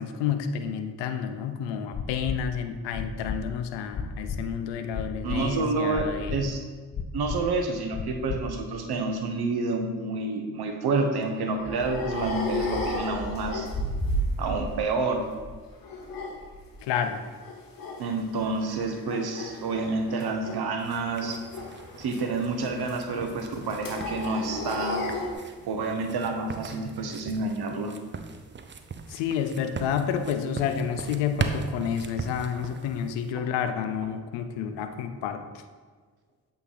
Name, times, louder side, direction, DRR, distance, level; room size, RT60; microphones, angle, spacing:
voice 1, 0.0-6.5 16.8-17.2 29.1-35.4, left 7 dB, 80° left, 8 dB, 0.6 m, -30 dB
sound 1, 1.9-2.4 2.9-3.4 3.9-4.4 4.9-5.4 5.9-6.4 6.9-7.4 7.9-8.4 8.9-9.0, left 7 dB, 30° left, 0.5 m, -32 dB
voice 2, 5.2-6.7 7.1-13.7 14.4-15.3 18.0-21.4 22.0-25.0 25.6-27.9, right 3 dB, 65° right, 5 dB, 1.0 m, -29 dB
sound 2, 11.2-14.9 15.1-17.1 17.4-18.1 18.4-25.3, left 1 dB, 55° left, 1.2 m, -34 dB
sound 3, 20.8-33.3, right 5 dB, 25° right, 0.6 m, -39 dB
7.9 x 3.4 x 4.0 m, 1.5 s
hypercardioid pair, 40°, 42 cm